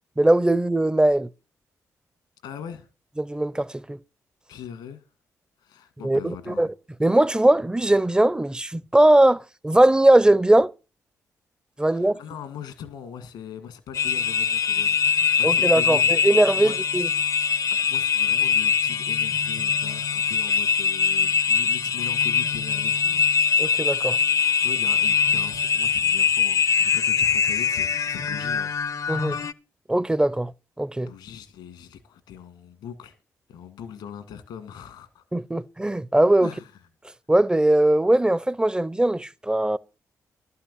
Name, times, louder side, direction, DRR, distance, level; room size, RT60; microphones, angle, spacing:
voice 1, 0.2-1.3 3.2-4.0 6.0-6.7 7.0-10.7 11.8-12.2 15.4-17.1 23.6-24.2 29.1-29.4 29.9-30.5 30.8-31.1 35.3-36.5 37.3-39.8, right 1 dB, 10° right, 0.6 m, -20 dB
voice 2, 2.4-2.9 4.5-5.0 5.6-6.7 11.8-16.2 16.5-16.8 17.7-23.3 24.6-28.7 31.0-33.2 33.5-35.2 36.4-36.7, left 8 dB, 85° left, 1.8 m, -40 dB
sound 1, 13.9-29.5, left 6 dB, 55° left, 0.6 m, -22 dB
12.0 x 5.6 x 8.3 m
supercardioid pair, 50°, 7 cm